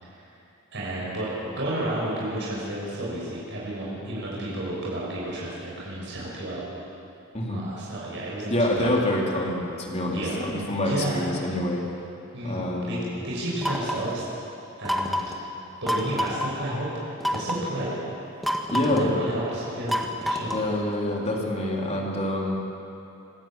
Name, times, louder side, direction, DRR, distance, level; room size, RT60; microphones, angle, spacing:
voice 1, 0.7-1.3 1.6-6.6 7.5-9.0 10.1-10.4 10.8-11.2 12.3-14.3 14.8-15.2 15.8-16.9 17.3-17.9 18.9-20.5, right 1 dB, 60° right, -6 dB, 6.2 m, -31 dB
voice 2, 7.3-7.7 8.5-11.8 12.4-13.2 18.7-19.2 20.5-22.6, left 1 dB, 30° left, -1 dB, 3.5 m, -26 dB
sound 1, 13.6-14.1 14.9-15.4 15.9-16.5 17.2-17.7 18.4-19.1 19.9-20.7, equal, ahead, 1.6 m, -28 dB
25.5 x 13.5 x 9.0 m, 2.9 s
head